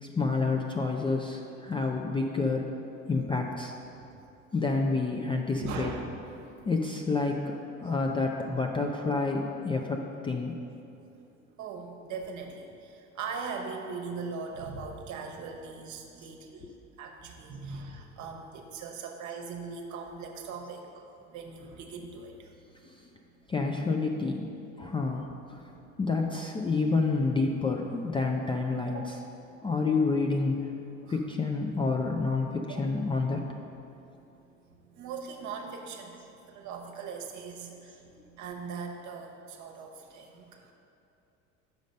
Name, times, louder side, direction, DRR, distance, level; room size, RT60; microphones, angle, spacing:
voice 1, 0.0-2.7 3.1-3.7 4.5-5.9 6.6-10.5 16.6-16.7 22.9-23.0 23.5-24.5 24.8-25.6 26.0-29.0 29.6-30.7 31.1-33.4, left 3 dB, 15° left, 1 dB, 0.4 m, -29 dB
voice 2, 5.6-6.5 11.6-16.7 17.0-22.5 25.6-26.1 28.9-29.6 31.0-31.2 32.7-32.8 34.9-40.7, right 5 dB, 45° right, 3 dB, 1.0 m, -40 dB
6.5 x 5.2 x 5.2 m, 2.8 s
hypercardioid pair, 75°, 39 cm